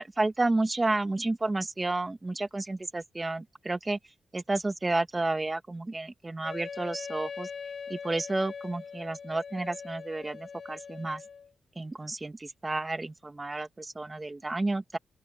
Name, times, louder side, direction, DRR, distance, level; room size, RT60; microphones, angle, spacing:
voice 1, 0.0-4.0 4.3-7.5 7.9-11.2 11.8-15.0, right 2 dB, 25° right, 2.3 m, -31 dB
Wind instrument woodwind instrument, 6.4-11.5, left 6 dB, 60° left, 7.0 m, -41 dB
open air
cardioid pair, 75°, 0 cm